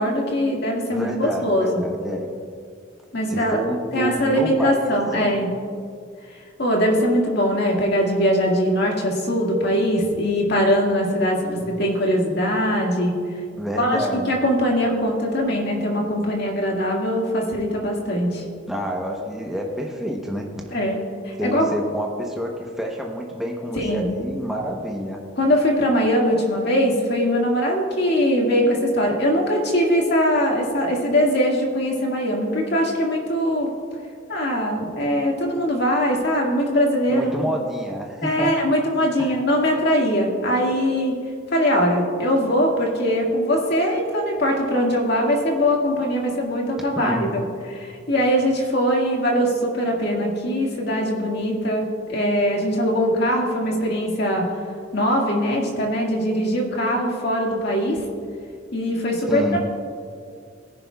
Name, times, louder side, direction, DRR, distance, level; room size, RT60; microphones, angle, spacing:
voice 1, 0.0-1.8 3.1-3.6 3.9-5.5 6.6-13.1 13.8-18.4 20.7-21.7 23.8-24.1 25.4-33.7 34.3-37.3 38.2-41.2 41.5-47.4 47.7-54.4 54.9-58.0 58.7-59.6, equal, 60° left, -1 dB, 1.9 m, -21 dB
voice 2, 0.9-2.3 3.3-5.5 11.4-11.7 13.6-14.4 18.7-20.8 21.4-25.2 37.1-38.5 39.2-39.3 46.8-47.3 59.3-59.6, equal, ahead, -1 dB, 0.9 m, -28 dB
18.0 x 10.5 x 2.3 m, 2.2 s
head